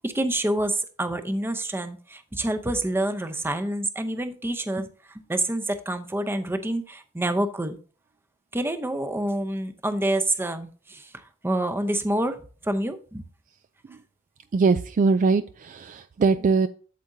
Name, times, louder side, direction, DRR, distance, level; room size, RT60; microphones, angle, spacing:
voice 1, 0.0-7.8 8.5-13.3, right 1 dB, 10° right, 7 dB, 0.7 m, -27 dB
voice 2, 14.5-16.7, right 4 dB, 35° right, 11 dB, 0.3 m, -21 dB
8.4 x 7.7 x 2.7 m, 0.39 s
head